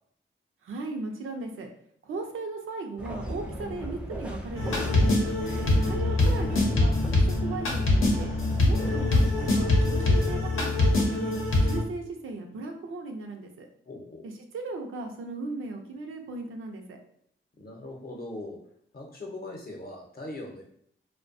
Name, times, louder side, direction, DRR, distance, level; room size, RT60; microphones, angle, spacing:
voice 1, 0.6-1.7 2.0-5.1 5.8-8.3 8.6-11.3 11.6-13.7 14.2-17.0, right 3 dB, 90° right, 3 dB, 0.5 m, -37 dB
sound 1, 3.0-10.5, equal, 5° right, 0.3 m, -38 dB
sound 2, 4.6-11.8, left 2 dB, 85° left, 0.7 m, -24 dB
voice 2, 5.4-5.8 13.9-14.3 17.6-18.6 18.9-20.6, left 1 dB, 50° left, 1 dB, 0.7 m, -40 dB
2.6 x 2.1 x 2.5 m, 0.67 s
wide cardioid pair, 90°, 21 cm